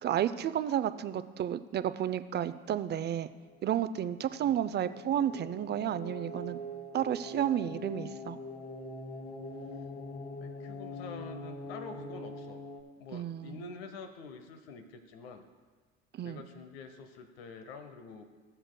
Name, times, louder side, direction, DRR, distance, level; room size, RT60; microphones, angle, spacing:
voice 1, 0.0-3.3 3.6-6.6 6.9-8.4 13.1-13.7 16.1-16.4, right 10 dB, 35° right, 13 dB, 0.5 m, -32 dB
Wide Cinematic Anxious Drone, 3.4-12.8, left 1 dB, 30° left, 1.2 m, -43 dB
voice 2, 10.4-12.6 13.0-15.5 16.2-18.2, left 4 dB, 85° left, 7 dB, 0.8 m, -47 dB
18.5 x 6.6 x 2.2 m, 1.5 s
hypercardioid pair, 75°, 30 cm